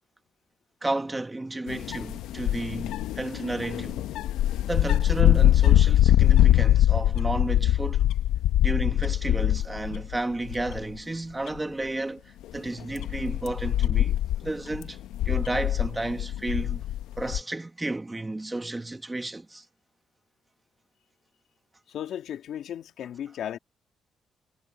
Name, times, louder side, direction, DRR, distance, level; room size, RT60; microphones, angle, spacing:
voice 1, 0.8-4.0 4.7-8.0 8.6-15.0 15.2-16.8 17.2-19.6, right 2 dB, 15° right, 1.8 m, -32 dB
sound 1, 1.7-10.2 10.5-11.0 11.5-11.6 12.4-17.4, left 12 dB, 90° left, 0.9 m, -23 dB
voice 2, 21.9-23.6, left 10 dB, 70° left, 2.6 m, -35 dB
cardioid pair, 90°, 0 cm